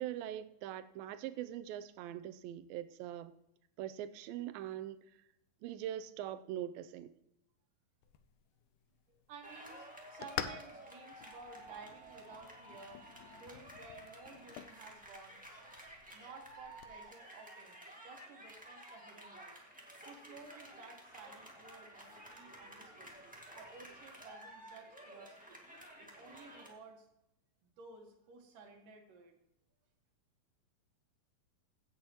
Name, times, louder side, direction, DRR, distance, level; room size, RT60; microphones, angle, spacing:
voice 1, 0.0-3.3 3.8-5.0 5.6-7.1, right 12 dB, 90° right, 2.4 m, -42 dB
sound 1, 8.0-17.0, left 10 dB, 75° left, 2.0 m, -49 dB
voice 2, 9.1-13.0 13.3-15.4 16.1-19.6 20.1-23.1 23.6-25.6 26.0-27.1 27.6-29.3, right 4 dB, 70° right, 3.0 m, -55 dB
sound 2, 9.4-26.7, right 1 dB, 10° right, 0.4 m, -53 dB
16.0 x 7.9 x 3.0 m
omnidirectional pair, 4.1 m